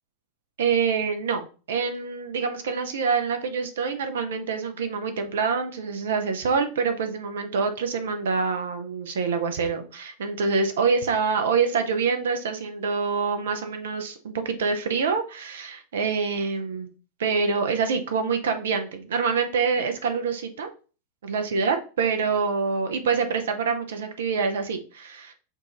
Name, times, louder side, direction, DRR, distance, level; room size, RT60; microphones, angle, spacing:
voice 1, 0.6-16.9 17.2-20.7 21.2-25.3, right 5 dB, 60° right, 7 dB, 0.8 m, -26 dB
6.9 x 2.6 x 3.0 m, 0.36 s
figure-of-eight pair, 90°, 0 cm